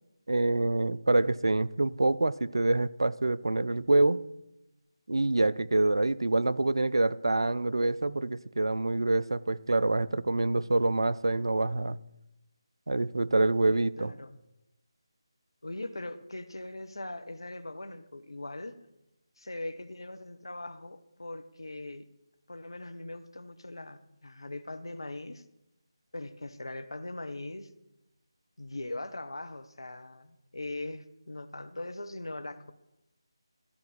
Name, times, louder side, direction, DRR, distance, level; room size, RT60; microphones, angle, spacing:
voice 1, 0.3-4.2 5.1-12.0 12.9-14.1, right 2 dB, 60° right, 0.4 m, -26 dB
voice 2, 13.7-14.4 15.6-18.8 19.4-22.1 22.5-25.4 26.1-27.7 28.6-32.7, left 2 dB, 65° left, 0.9 m, -40 dB
13.5 x 4.6 x 8.6 m
figure-of-eight pair, 155°, 3 cm